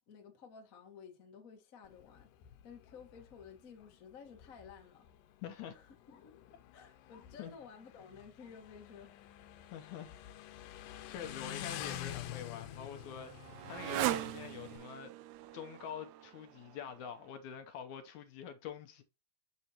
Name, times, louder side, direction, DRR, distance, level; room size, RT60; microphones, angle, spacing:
voice 1, 0.1-2.3 2.6-5.1 5.7-6.3 6.7-9.1, left 6 dB, 50° left, 0.9 m, -54 dB
Motorcycle, 1.8-14.8, left 12 dB, 90° left, 2.4 m, -48 dB
voice 2, 5.4-5.7 7.4-7.5 9.7-10.2 11.1-15.1 15.5-19.0, left 8 dB, 75° left, 1.9 m, -46 dB
Motorcycle 2, 11.9-17.3, right 14 dB, 80° right, 1.6 m, -41 dB
6.8 x 6.3 x 2.8 m
omnidirectional pair, 3.7 m